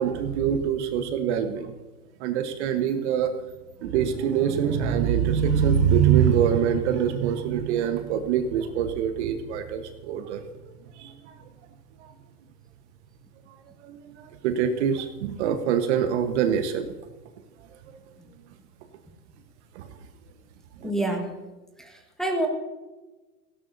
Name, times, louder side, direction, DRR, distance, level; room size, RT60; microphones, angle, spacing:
voice 1, 0.0-1.7 2.2-3.3 3.8-10.4 11.0-11.1 13.8-14.2 14.4-16.9 19.8-19.9 20.8-20.9, right 8 dB, 45° right, 7 dB, 1.3 m, -24 dB
voice 2, 20.8-21.3 22.2-22.5, right 2 dB, ahead, 0 dB, 1.5 m, -25 dB
17.5 x 16.5 x 2.7 m, 1.2 s
hypercardioid pair, 125°, 47 cm